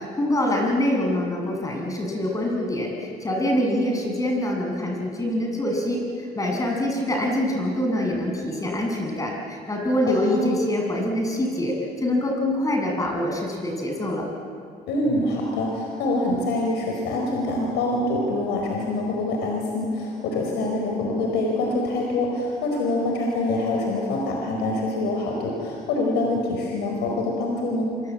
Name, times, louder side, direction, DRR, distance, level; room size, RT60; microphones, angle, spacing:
voice 1, 0.0-14.3, left 1 dB, 20° left, 0 dB, 7.4 m, -25 dB
voice 2, 10.1-10.5 14.9-27.9, left 2 dB, 90° left, 1 dB, 4.9 m, -25 dB
27.0 x 25.0 x 8.6 m, 2.4 s
cardioid pair, 110°, 17 cm